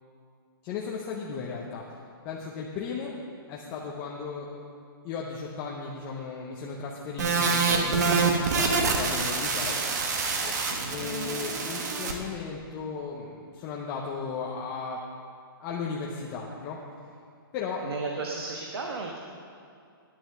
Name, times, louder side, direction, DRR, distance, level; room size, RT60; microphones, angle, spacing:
voice 1, 0.6-1.8 2.2-3.1 3.5-4.5 5.0-9.8 10.4-10.5 10.9-15.0 15.6-16.8 17.5-17.8, left 5 dB, 20° left, -3 dB, 0.6 m, -35 dB
sound 1, 7.2-12.1, right 4 dB, 45° right, 1.2 m, -26 dB
voice 2, 17.8-19.2, right 3 dB, 80° right, 1 dB, 1.3 m, -34 dB
10.5 x 7.6 x 6.6 m, 2.4 s
hypercardioid pair, 170°, 13 cm